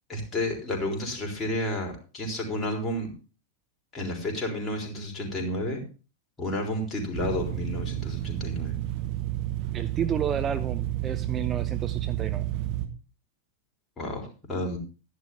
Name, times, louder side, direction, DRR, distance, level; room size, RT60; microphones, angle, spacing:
voice 1, 0.1-3.1 3.9-5.8 6.4-8.8 14.0-14.8, left 1 dB, 25° left, 1 dB, 4.0 m, -31 dB
sound 1, 7.1-12.9, right 14 dB, 45° right, 1.6 m, -31 dB
voice 2, 9.7-12.5, right 8 dB, 25° right, 10 dB, 0.6 m, -31 dB
12.0 x 10.5 x 3.6 m, 0.34 s
figure-of-eight pair, 90°, 0 cm